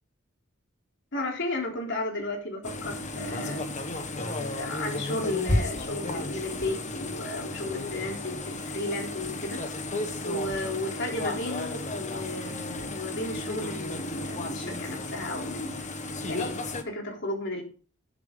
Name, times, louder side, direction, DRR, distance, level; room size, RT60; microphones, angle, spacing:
voice 1, 1.1-3.8 4.4-9.9 10.2-15.8 16.3-16.6 16.8-17.6, left 2 dB, 60° left, 1 dB, 3.7 m, -34 dB
sound 1, 2.6-16.8, left 2 dB, 35° left, 1.5 m, -33 dB
11.5 x 10.5 x 3.9 m, 0.39 s
head